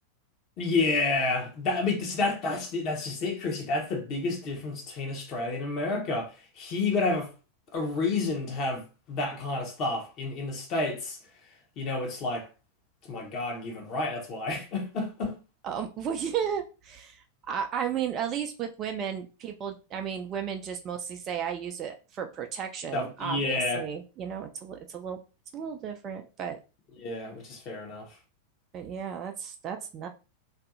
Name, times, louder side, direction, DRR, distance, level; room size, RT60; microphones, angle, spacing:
voice 1, 0.6-7.3 7.7-11.2 11.8-12.5 13.1-15.4 22.9-23.9 27.0-28.1, left 3 dB, 35° left, 0.8 m, -30 dB
voice 2, 15.6-25.2 25.5-26.6 28.7-30.1, right 8 dB, 30° right, 0.3 m, -34 dB
2.6 x 2.6 x 2.4 m
figure-of-eight pair, 90°, 0 cm